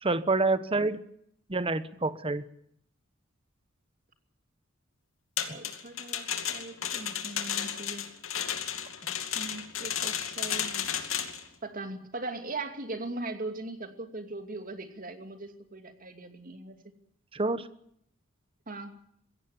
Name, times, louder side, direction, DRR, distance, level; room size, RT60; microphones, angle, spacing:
voice 1, 0.0-1.0 1.5-2.4 17.3-17.7, right 3 dB, 25° right, 13 dB, 1.1 m, -27 dB
sound 1, 5.4-11.4, left 9 dB, 85° left, 2.5 m, -33 dB
voice 2, 5.4-8.0 9.3-10.9 11.6-16.8 18.7-18.9, right 2 dB, 45° right, 7 dB, 2.6 m, -39 dB
21.5 x 17.0 x 8.7 m, 0.72 s
head